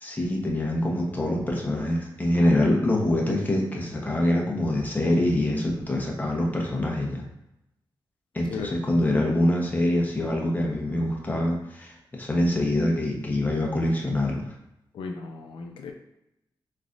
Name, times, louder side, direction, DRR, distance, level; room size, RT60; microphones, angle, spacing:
voice 1, 0.0-7.2 8.3-14.5, left 1 dB, 20° left, -1 dB, 1.0 m, -25 dB
voice 2, 14.9-15.9, left 4 dB, 85° left, 3 dB, 0.4 m, -35 dB
3.9 x 3.2 x 2.6 m, 0.85 s
cardioid pair, 75°, 9 cm